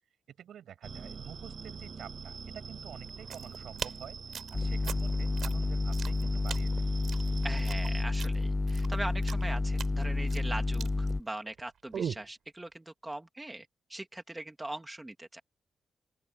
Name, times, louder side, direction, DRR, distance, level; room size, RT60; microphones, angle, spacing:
voice 1, 0.3-6.9, right 9 dB, 80° right, 5.4 m, -49 dB
sound 1, 0.8-8.0, right 5 dB, 35° right, 6.8 m, -45 dB
sound 2, 3.1-11.6 11.9-12.3, right 8 dB, 55° right, 3.9 m, -41 dB
sound 3, 4.5-11.2, left 2 dB, 15° left, 0.4 m, -30 dB
voice 2, 7.4-15.4, right 1 dB, 10° right, 2.0 m, -41 dB
open air
wide cardioid pair, 180°, 0 cm